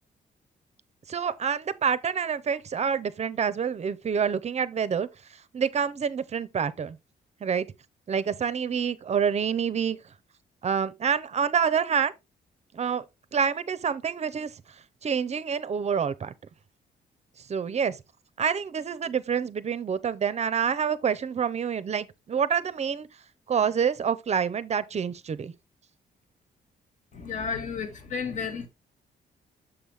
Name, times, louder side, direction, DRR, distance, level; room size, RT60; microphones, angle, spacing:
voice 1, 1.1-5.1 5.5-7.0 7.4-7.7 8.1-10.0 10.6-12.1 12.7-13.0 13.3-14.5 15.0-16.3 17.5-18.0 18.4-23.1 23.5-25.5, right 7 dB, 40° right, 0.6 m, -27 dB
voice 2, 27.1-28.7, left 6 dB, 45° left, 1.6 m, -32 dB
6.8 x 5.5 x 3.3 m
cardioid pair, 100°, 17 cm